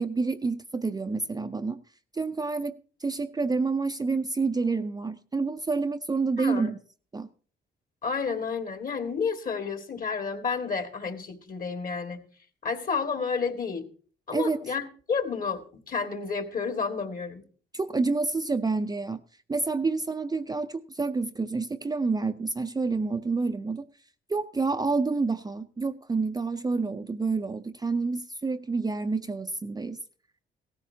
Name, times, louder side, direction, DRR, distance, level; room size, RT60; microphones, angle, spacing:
voice 1, 0.0-1.8 2.1-6.8 7.1-7.3 14.3-14.6 17.7-19.2 19.5-23.9 24.3-30.0, right 4 dB, 20° right, 0.5 m, -28 dB
voice 2, 6.4-6.7 8.0-12.2 12.6-13.8 14.3-17.4, left 5 dB, 45° left, 1.8 m, -31 dB
16.0 x 14.0 x 2.7 m
cardioid pair, 90°, 20 cm